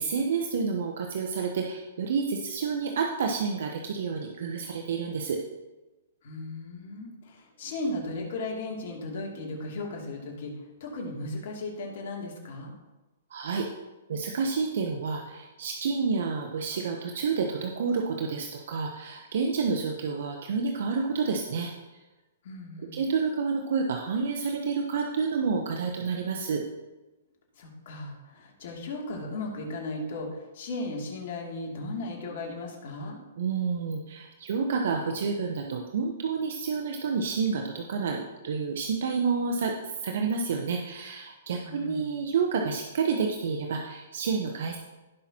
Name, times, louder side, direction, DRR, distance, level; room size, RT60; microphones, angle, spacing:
voice 1, 0.0-5.4 13.3-13.7 14.1-21.7 22.9-26.6 33.4-44.8, right 5 dB, 70° right, 3 dB, 0.9 m, -29 dB
voice 2, 6.2-12.7 22.4-23.0 27.6-33.2 41.6-42.1, left 2 dB, 60° left, -1 dB, 2.6 m, -36 dB
17.0 x 5.8 x 2.9 m, 1.1 s
hypercardioid pair, 135°, 0 cm